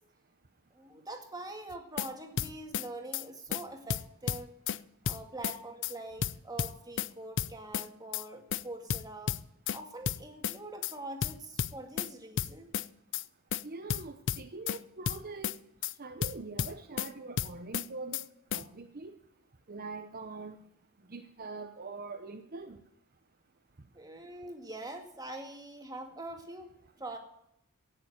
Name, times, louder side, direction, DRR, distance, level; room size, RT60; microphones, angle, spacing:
voice 1, 0.7-4.5 5.0-9.4 9.7-12.7 23.9-26.7 27.0-27.2, right 2 dB, 15° right, 3 dB, 2.1 m, -44 dB
sound 1, 1.7-2.1 2.4-2.9 3.1-3.2 3.5-3.6 3.9-4.8 5.0-5.6 5.8-5.9 6.2-7.1 7.4-7.9 8.1-8.2 8.5-8.6 8.9-9.8 10.1-10.6 10.8-10.9 11.2-12.1 12.4-12.9 13.1-13.2 13.5-13.6 13.9-14.8 15.1-15.6 15.8-15.9 16.2-17.1 17.4-17.9 18.1-18.2 18.5-18.6, left 8 dB, 55° left, 0.5 m, -32 dB
voice 2, 13.6-15.5 16.0-18.2 18.5-19.1 19.7-20.6 21.1-22.8, right 3 dB, 45° right, 5 dB, 0.9 m, -43 dB
17.0 x 6.9 x 8.0 m, 0.77 s
head